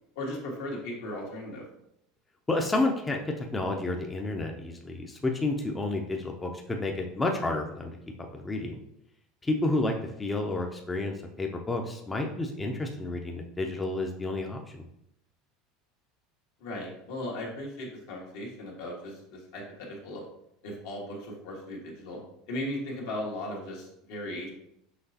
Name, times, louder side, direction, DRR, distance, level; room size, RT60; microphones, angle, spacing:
voice 1, 0.1-1.6 16.6-20.2 20.6-22.2 22.5-24.5, left 1 dB, 75° left, -2 dB, 1.5 m, -37 dB
voice 2, 2.5-8.0 8.3-8.8 9.4-14.8, left 2 dB, 15° left, 2 dB, 0.5 m, -30 dB
5.7 x 3.2 x 2.8 m, 0.77 s
supercardioid pair, 130°, 0 cm